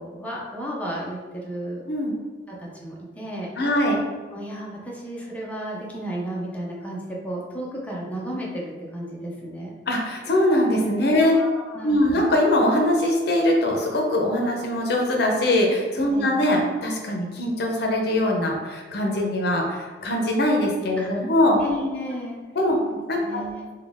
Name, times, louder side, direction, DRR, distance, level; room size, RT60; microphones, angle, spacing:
voice 1, 0.0-1.8 2.5-3.5 4.3-9.7 11.2-12.0 16.1-16.3 21.0-21.3 21.6-22.4 22.7-22.8 23.2-23.7, equal, 10° left, -4 dB, 0.6 m, -33 dB
voice 2, 3.6-4.0 9.9-11.4 11.8-21.6 22.0-22.1 22.6-22.8 23.1-23.4, left 1 dB, 60° left, 1 dB, 0.6 m, -22 dB
4.1 x 2.2 x 3.5 m, 1.4 s
head